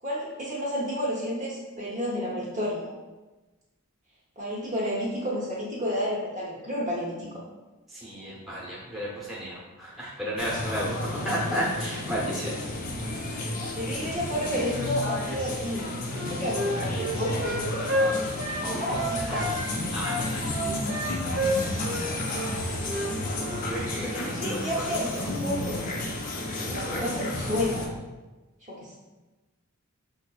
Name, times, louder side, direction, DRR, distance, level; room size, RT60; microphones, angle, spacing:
voice 1, 0.0-2.9 4.4-7.3 13.7-15.9 16.3-17.5 18.8-19.4 24.1-25.8 26.7-27.9 28.7-29.0, equal, 35° right, -5 dB, 0.7 m, -31 dB
voice 2, 7.9-12.5 18.5-18.8 19.3-19.4 19.9-20.5 23.5-24.9 25.2-25.4 26.6-27.1, equal, ahead, -7 dB, 0.8 m, -33 dB
sound 1, 10.4-27.9, left 1 dB, 35° left, 0.4 m, -32 dB
Wind instrument woodwind instrument, 16.1-19.6 20.0-22.1 22.3-22.5 22.8-23.1 23.4-23.6, equal, 70° right, 0.9 m, -30 dB
4.6 x 2.6 x 2.3 m, 1.1 s
head